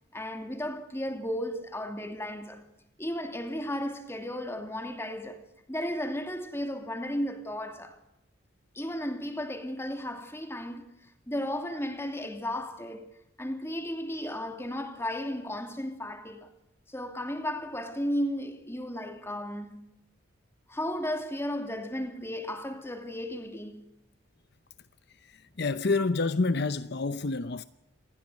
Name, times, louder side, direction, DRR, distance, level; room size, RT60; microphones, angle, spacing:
voice 1, 0.1-2.6 3.0-8.0 8.7-13.1 13.4-16.5 16.9-19.9 20.7-23.9, left 1 dB, 10° left, 2.7 m, -34 dB
voice 2, 25.6-27.6, left 3 dB, 55° left, 0.7 m, -27 dB
28.0 x 20.5 x 6.4 m
head